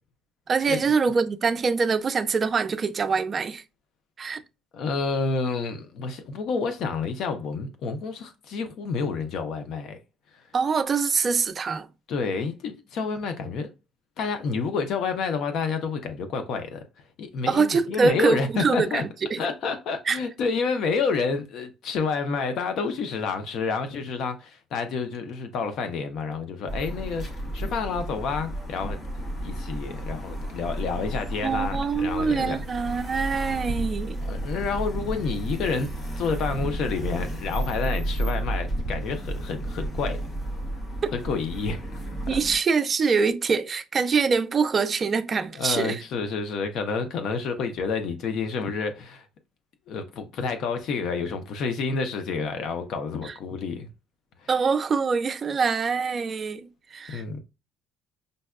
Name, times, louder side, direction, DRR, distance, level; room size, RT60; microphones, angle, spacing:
voice 1, 0.5-3.6 4.2-4.4 10.5-11.9 17.5-19.0 19.3-19.4 20.1-20.2 31.4-34.2 42.3-46.0 53.2-53.3 54.5-57.4, right 5 dB, 30° right, 0.4 m, -24 dB
voice 2, 4.7-10.0 10.3-10.4 12.1-13.7 14.2-16.8 17.2-19.0 19.4-29.0 29.4-32.6 34.2-35.9 36.2-40.2 41.1-41.8 42.3-42.4 45.5-49.3 49.9-53.9 54.4-54.5 57.1-57.4, left 5 dB, 55° left, 0.5 m, -29 dB
sound 1, 26.7-42.6, right 1 dB, 25° left, 0.9 m, -32 dB
5.2 x 2.2 x 2.3 m
cardioid pair, 145°, 0 cm